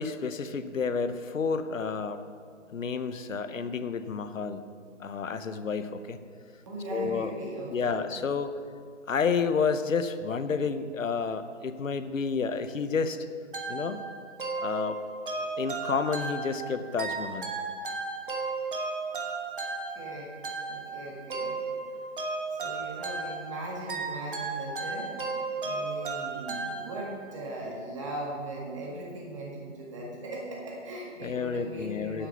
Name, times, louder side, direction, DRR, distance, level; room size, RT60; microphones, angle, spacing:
voice 1, 0.0-2.2 2.7-4.6 5.0-6.2 6.9-7.3 7.7-8.5 9.1-13.2 13.7-14.0 14.6-15.0 15.6-17.5 31.2-32.3, left 5 dB, 85° left, 11 dB, 0.8 m, -30 dB
voice 2, 6.6-8.0 19.9-20.3 20.7-21.6 22.6-25.2 25.6-32.3, right 1 dB, 25° right, -3 dB, 1.7 m, -39 dB
sound 1, 13.5-27.4, right 3 dB, 45° right, 1.3 m, -35 dB
8.2 x 7.8 x 5.7 m, 2.1 s
hypercardioid pair, 165°, 38 cm